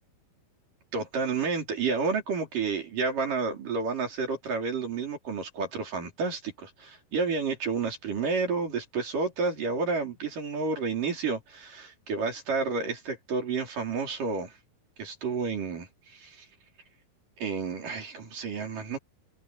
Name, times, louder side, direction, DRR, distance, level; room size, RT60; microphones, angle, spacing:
voice 1, 0.9-14.5 15.0-16.5 17.4-19.0, right 4 dB, 65° right, 5.9 m, -30 dB
omnidirectional pair, 4.1 m